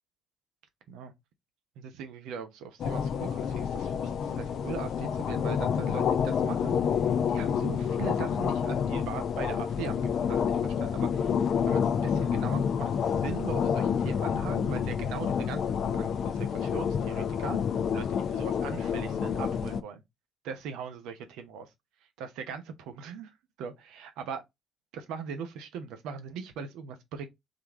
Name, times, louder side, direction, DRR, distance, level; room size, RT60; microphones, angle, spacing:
voice 1, 1.8-11.3 11.7-17.6 17.9-20.0 20.4-21.7 22.2-23.3 23.6-24.4 24.9-27.3, right 6 dB, 70° right, 0.9 m, -40 dB
sound 1, 2.8-19.8, left 7 dB, 60° left, 0.5 m, -28 dB
3.9 x 3.4 x 3.6 m
hypercardioid pair, 45°, 0 cm